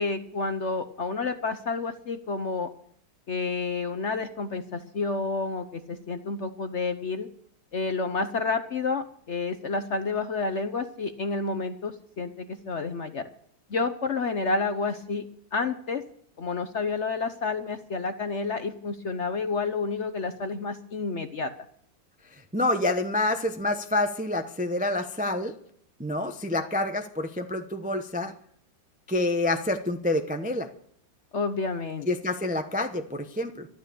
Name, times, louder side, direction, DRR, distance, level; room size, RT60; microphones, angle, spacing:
voice 1, 0.0-2.7 3.3-7.3 7.7-13.2 13.7-15.3 15.5-16.0 16.4-21.5 31.3-32.1, left 4 dB, 50° left, 9 dB, 0.9 m, -30 dB
voice 2, 22.3-25.5 26.0-28.3 29.1-30.7 32.1-33.7, left 2 dB, 10° right, 6 dB, 0.4 m, -27 dB
12.5 x 12.5 x 6.9 m, 0.63 s
omnidirectional pair, 2.1 m